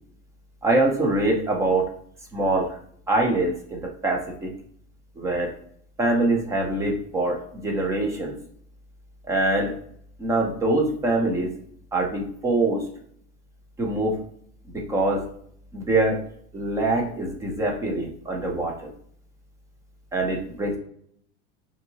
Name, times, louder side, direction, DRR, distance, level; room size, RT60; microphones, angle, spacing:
voice 1, 0.6-1.9 2.3-2.8 3.1-4.5 5.2-5.5 6.0-8.4 9.3-9.7 10.2-11.5 11.9-12.9 13.8-14.2 14.7-15.3 15.7-16.2 16.5-18.9 20.1-20.8, right 2 dB, 10° right, 1 dB, 0.4 m, -24 dB
5.5 x 2.6 x 2.7 m, 0.64 s
supercardioid pair, 165°, 34 cm